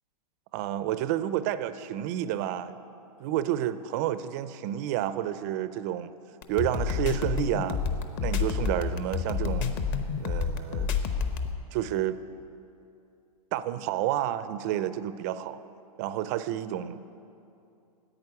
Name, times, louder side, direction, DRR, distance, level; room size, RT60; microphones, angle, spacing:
voice 1, 0.5-2.8 3.2-6.1 6.5-7.8 8.2-9.8 10.2-10.9 11.7-12.2 13.5-15.6 16.0-17.0, right 12 dB, 25° right, 13 dB, 0.4 m, -30 dB
sound 1, 6.4-11.5, left 6 dB, 30° left, 0.8 m, -29 dB
10.5 x 8.7 x 9.6 m, 2.7 s
hypercardioid pair, 155°, 20 cm